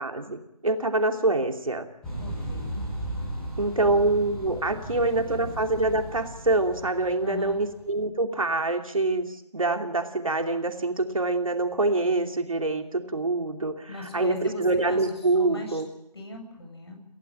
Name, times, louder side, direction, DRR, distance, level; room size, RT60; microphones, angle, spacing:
voice 1, 0.0-1.9 3.6-15.9, right 2 dB, 55° right, 5 dB, 2.8 m, -25 dB
Footsteps of the Beast, 2.0-7.9, right 1 dB, 5° left, 4.3 m, -36 dB
voice 2, 2.2-2.7 3.9-4.2 4.7-5.5 7.2-7.6 13.9-15.1 15.4-15.8 16.1-17.1, left 2 dB, 40° left, 4 dB, 7.6 m, -40 dB
29.5 x 16.0 x 9.0 m, 0.85 s
figure-of-eight pair, 170°, 20 cm